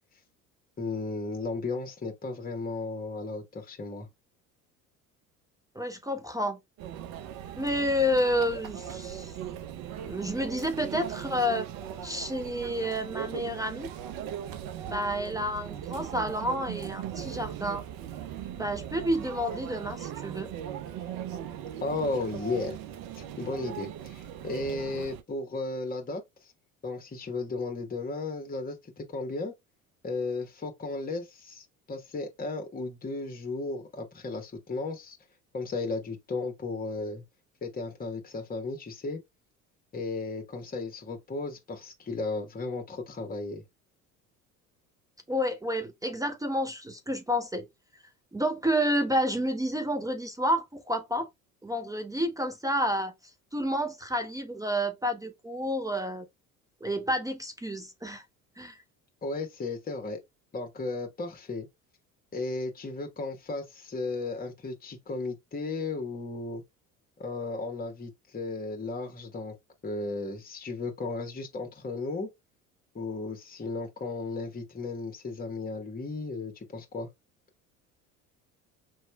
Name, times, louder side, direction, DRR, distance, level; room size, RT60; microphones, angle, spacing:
voice 1, 0.8-4.1 21.8-22.8 23.1-26.5 26.8-29.5 30.0-35.2 35.5-37.2 37.6-39.2 39.9-43.6 59.2-60.2 60.5-61.7 62.3-66.6 67.2-69.6 69.8-72.3 72.9-77.1, left 3 dB, 20° left, 1.3 m, -35 dB
voice 2, 5.8-6.6 7.6-9.3 10.0-11.7 12.0-13.9 14.9-17.8 18.5-20.5 45.3-47.7 48.3-51.3 51.6-53.1 53.5-56.3 56.8-58.2 58.6-58.8, equal, 10° right, 0.5 m, -30 dB
Conversation / Chatter / Crowd, 6.8-25.2, right 10 dB, 50° right, 0.7 m, -39 dB
5.6 x 3.0 x 2.2 m
hypercardioid pair, 65°, 43 cm